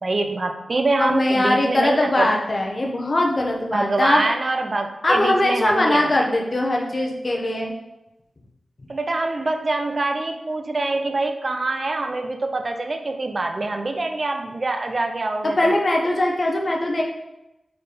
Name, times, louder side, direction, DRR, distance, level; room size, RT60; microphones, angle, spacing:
voice 1, 0.0-2.3 3.7-6.3 8.9-15.7, right 2 dB, 40° right, 5 dB, 0.6 m, -25 dB
voice 2, 1.0-4.2 5.0-7.7 15.4-17.0, left 1 dB, 35° left, 0 dB, 1.0 m, -21 dB
4.6 x 4.5 x 5.0 m, 0.93 s
wide cardioid pair, 130°, 0 cm